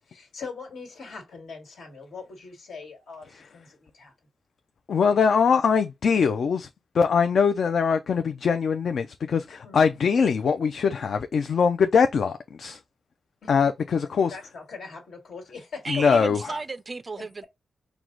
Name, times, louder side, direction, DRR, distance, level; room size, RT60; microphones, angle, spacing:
voice 1, 0.1-3.3 3.5-4.1 9.6-9.9 13.4-13.5 14.3-16.3 17.2-17.4, left 5 dB, 85° left, 1.5 m, -41 dB
voice 2, 4.9-6.7 6.9-12.8 13.5-14.4 15.9-16.6, left 6 dB, 65° left, 0.4 m, -22 dB
voice 3, 15.8-17.4, right 3 dB, 35° right, 0.3 m, -34 dB
4.6 x 2.1 x 3.7 m
cardioid pair, 95°, 0 cm